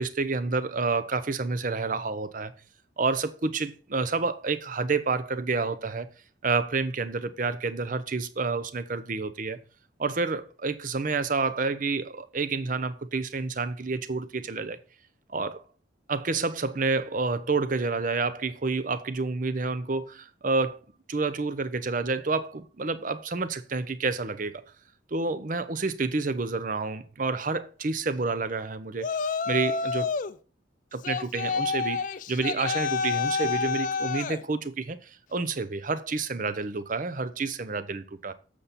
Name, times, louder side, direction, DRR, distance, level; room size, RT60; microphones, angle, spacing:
voice 1, 0.0-2.5 3.0-6.1 6.4-9.6 10.0-14.8 15.3-15.6 16.1-20.8 21.1-24.6 25.1-29.1 29.5-30.1 30.9-32.0 32.3-38.3, right 4 dB, 45° right, 0.6 m, -29 dB
Yell, 29.0-30.3 31.0-34.4, left 5 dB, 45° left, 0.4 m, -29 dB
7.3 x 6.8 x 4.1 m
head